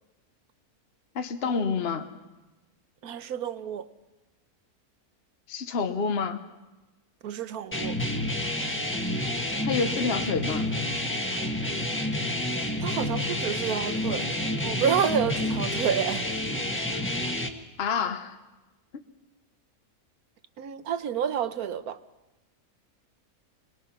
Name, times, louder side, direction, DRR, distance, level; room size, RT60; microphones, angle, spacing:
voice 1, 1.1-2.1 5.5-6.4 9.6-10.7 17.8-18.4 18.9-19.0, left 5 dB, 45° left, 1.2 m, -28 dB
voice 2, 3.0-3.9 7.2-8.0 12.8-14.3 14.6-16.3 20.6-22.0, right 8 dB, 75° right, 1.4 m, -29 dB
sound 1, 7.7-17.5, left 1 dB, 10° left, 1.3 m, -29 dB
25.0 x 20.5 x 5.9 m
omnidirectional pair, 1.6 m